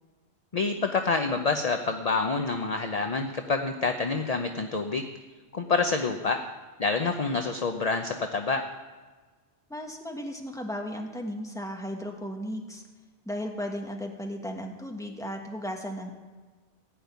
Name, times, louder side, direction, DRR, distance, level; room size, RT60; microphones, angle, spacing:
voice 1, 0.5-5.1 5.5-6.4 6.8-8.6, left 4 dB, 40° left, 5 dB, 0.8 m, -27 dB
voice 2, 9.7-12.8 13.2-16.1, equal, 5° left, 2 dB, 1.4 m, -35 dB
16.0 x 5.4 x 9.4 m, 1.3 s
omnidirectional pair, 1.2 m